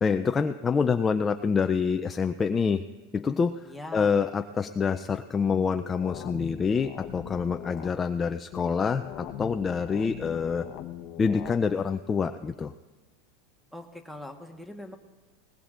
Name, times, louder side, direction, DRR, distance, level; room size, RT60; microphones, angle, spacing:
voice 1, 0.0-2.8 3.1-3.6 3.9-10.6 11.2-12.7, left 5 dB, 20° left, 8 dB, 0.4 m, -26 dB
voice 2, 3.6-4.2 13.7-15.0, left 1 dB, ahead, 4 dB, 1.4 m, -41 dB
sound 1, 5.5-7.9 8.5-11.5, left 12 dB, 50° left, 0.9 m, -40 dB
20.0 x 19.5 x 2.5 m, 1.3 s
supercardioid pair, 130°, 0 cm